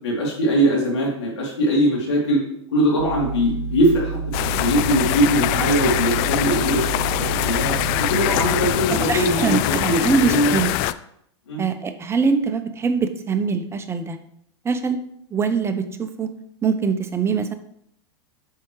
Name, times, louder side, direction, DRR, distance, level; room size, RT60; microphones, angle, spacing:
voice 1, 0.0-2.4 2.7-6.9 7.1-10.6 11.5-11.6, equal, 80° left, -3 dB, 3.3 m, -21 dB
sound 1, 3.0-8.7, right 5 dB, 65° right, 1.9 m, -29 dB
sound 2, 4.3-10.9, left 16 dB, 50° left, 0.4 m, -23 dB
voice 2, 8.9-10.7 11.6-14.2 14.6-15.0 15.3-16.3 16.6-17.5, right 5 dB, 15° right, 9 dB, 0.8 m, -23 dB
8.4 x 5.6 x 3.2 m, 0.71 s
hypercardioid pair, 115°, 15 cm